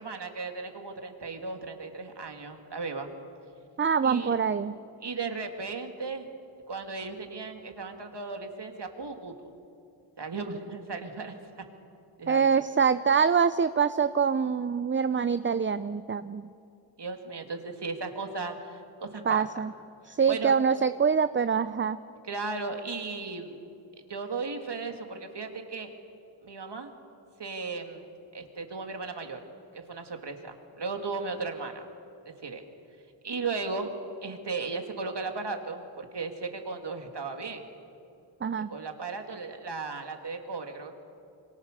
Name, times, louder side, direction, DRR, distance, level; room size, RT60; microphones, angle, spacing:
voice 1, 0.0-3.1 4.0-4.4 5.0-6.3 6.7-9.5 10.2-11.6 12.2-12.5 17.0-19.6 20.0-20.5 22.2-23.6 24.1-25.9 26.4-26.9 27.4-29.4 29.7-31.9 32.2-32.6 33.2-33.9 34.2-37.6 38.7-40.9, right 4 dB, 55° right, 5 dB, 2.7 m, -36 dB
voice 2, 3.8-4.7 12.3-16.5 19.3-19.7 20.1-22.0 38.4-38.7, right 6 dB, 25° right, 13 dB, 0.6 m, -25 dB
27.5 x 24.0 x 6.8 m, 2.7 s
cardioid pair, 60°, 49 cm